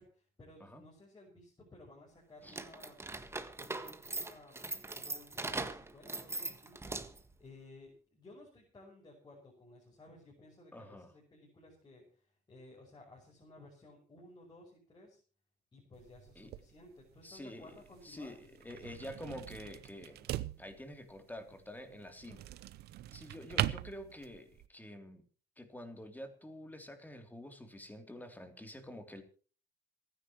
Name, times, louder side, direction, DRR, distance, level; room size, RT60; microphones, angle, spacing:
voice 1, 0.0-3.0 3.6-7.0 7.4-15.2 15.7-18.3, left 2 dB, 25° left, -2 dB, 6.2 m, -57 dB
sound 1, 2.5-7.3, right 2 dB, 15° right, 1.6 m, -41 dB
voice 2, 10.7-11.1 16.3-16.5 17.2-17.8 18.0-20.3 20.6-22.5 23.1-25.2 25.6-29.2, left 1 dB, 10° left, 6 dB, 3.2 m, -48 dB
sound 2, 15.9-24.7, right 14 dB, 75° right, 0.8 m, -42 dB
27.0 x 10.0 x 3.1 m, 0.39 s
cardioid pair, 105°, 17 cm